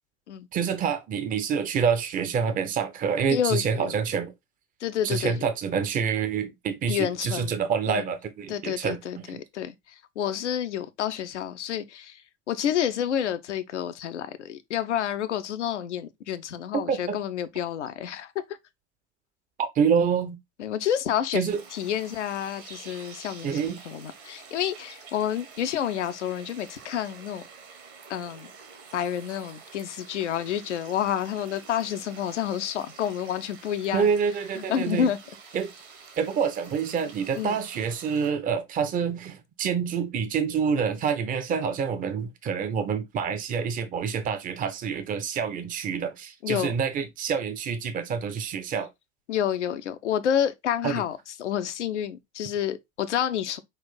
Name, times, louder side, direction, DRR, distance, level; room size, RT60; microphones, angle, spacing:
voice 1, 0.5-4.3 5.0-9.4 16.7-17.2 19.6-20.4 21.3-21.6 23.4-23.8 33.9-35.1 35.5-35.7 36.2-48.9 50.8-51.0, right 6 dB, 20° right, 0.7 m, -27 dB
voice 2, 3.3-3.9 4.8-5.4 6.9-7.6 7.9-8.0 8.5-9.7 10.2-12.2 12.5-18.3 20.6-21.4 21.7-27.4 28.1-28.5 28.9-34.1 34.6-35.2 37.4-37.6 46.4-46.7 49.3-53.6, left 9 dB, 70° left, 0.7 m, -29 dB
sound 1, 21.5-38.3, right 5 dB, 60° right, 1.6 m, -48 dB
5.6 x 2.5 x 3.6 m
figure-of-eight pair, 75°, 37 cm